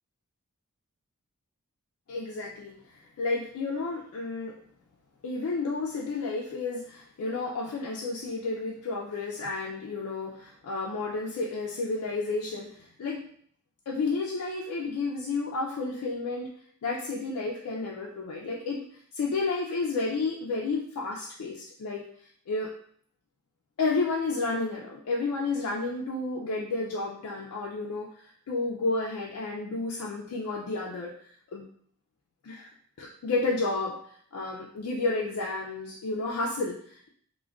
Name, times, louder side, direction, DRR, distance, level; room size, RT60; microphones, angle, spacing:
voice 1, 2.1-4.5 5.2-13.2 13.9-16.5 16.8-18.8 19.1-22.1 22.5-22.7 23.8-28.1 28.5-31.6 32.4-32.7 33.0-34.0 34.3-37.1, left 3 dB, 75° left, -3 dB, 0.4 m, -31 dB
2.4 x 2.1 x 3.3 m, 0.62 s
head